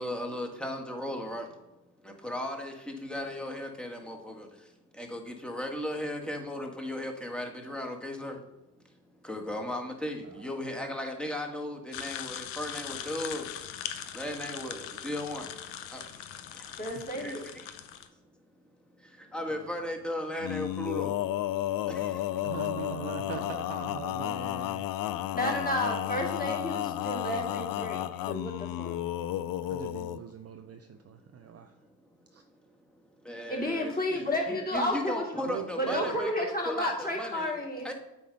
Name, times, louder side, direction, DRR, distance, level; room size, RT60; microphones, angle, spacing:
voice 1, 0.0-1.5 2.2-4.5 5.0-8.4 9.2-13.5 14.1-15.5 15.9-16.0 17.2-17.4 19.3-21.2 21.9-22.1 27.8-27.9 33.3-37.5 37.8-37.9, left 1 dB, ahead, 2 dB, 1.7 m, -36 dB
sound 1, 11.9-18.1, left 10 dB, 80° left, 0.8 m, -41 dB
voice 2, 16.8-17.4 25.3-29.0 33.5-35.5 35.8-37.9, left 1 dB, 20° left, -2 dB, 2.8 m, -32 dB
Male singing, 20.4-30.2, left 13 dB, 50° left, 0.5 m, -32 dB
voice 3, 22.4-24.3 35.5-36.2, right 10 dB, 90° right, 10 dB, 0.6 m, -38 dB
voice 4, 24.1-25.3 29.7-31.7 32.3-32.4, right 7 dB, 30° right, 7 dB, 0.6 m, -47 dB
8.5 x 3.6 x 5.4 m, 1.0 s
hypercardioid pair, 50°, 47 cm